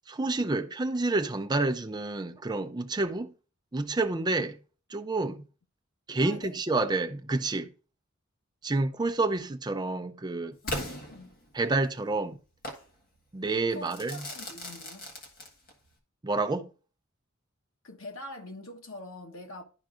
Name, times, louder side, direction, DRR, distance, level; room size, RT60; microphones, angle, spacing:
voice 1, 0.1-3.3 3.7-4.6 4.9-5.4 6.1-7.7 8.6-10.6 11.5-12.4 13.3-14.2 16.2-16.7, right 3 dB, 20° right, 0.5 m, -29 dB
voice 2, 6.2-6.5 10.6-11.4 13.5-15.1 17.8-19.6, left 2 dB, 80° left, 1.4 m, -44 dB
Crackle / Fireworks, 10.7-11.8 12.6-12.9 13.9-15.9, left 1 dB, 45° left, 1.6 m, -38 dB
11.5 x 4.6 x 2.5 m
head